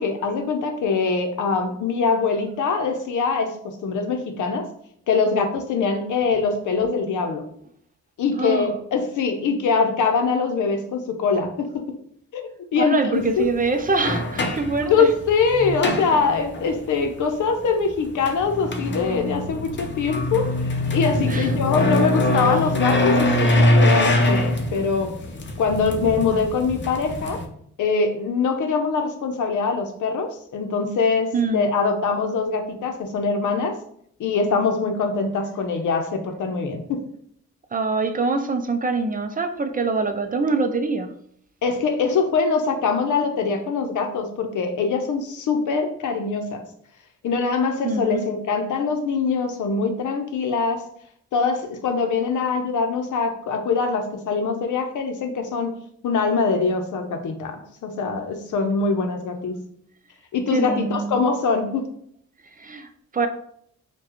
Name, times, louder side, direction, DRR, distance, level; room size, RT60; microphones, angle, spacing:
voice 1, 0.0-3.5 3.8-4.7 5.1-7.4 8.2-11.9 12.3-12.4 12.7-13.5 14.9-25.1 25.6-27.4 27.8-33.7 34.2-37.0 41.6-46.6 47.2-50.8 51.3-55.8 56.0-59.5 60.3-61.9, left 4 dB, 80° left, 5 dB, 0.7 m, -23 dB
voice 2, 8.4-8.7 12.8-15.1 21.3-21.5 22.4-22.5 31.3-31.7 37.7-41.1 47.8-48.2 60.5-61.2 62.6-63.3, right 3 dB, 30° right, 7 dB, 0.4 m, -24 dB
sound 1, 13.2-13.3 13.9-16.7 18.1-27.4, left 1 dB, 40° left, 0.7 m, -23 dB
4.6 x 2.3 x 3.0 m, 0.66 s
cardioid pair, 85°, 30 cm